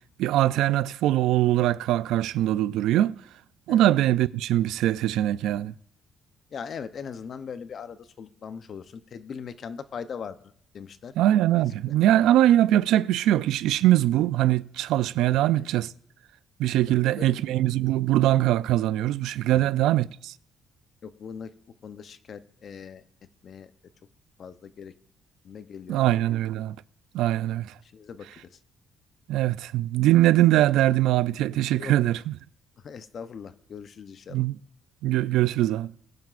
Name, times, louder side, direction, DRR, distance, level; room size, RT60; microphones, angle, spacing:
voice 1, 0.2-3.1 3.7-5.7 11.2-15.9 16.6-20.3 25.9-26.8 27.1-27.7 29.3-32.3 34.3-34.6 35.0-35.9, right 14 dB, 90° right, 0.3 m, -22 dB
voice 2, 6.5-11.1 11.9-12.0 15.3-15.7 16.9-17.3 19.5-19.7 21.0-21.5 21.8-23.0 23.4-23.7 24.4-24.9 25.4-26.2 27.8-28.6 31.8-31.9 32.8-34.4, left 6 dB, 45° left, 0.7 m, -40 dB
21.0 x 9.4 x 2.5 m
cardioid pair, 130°, 0 cm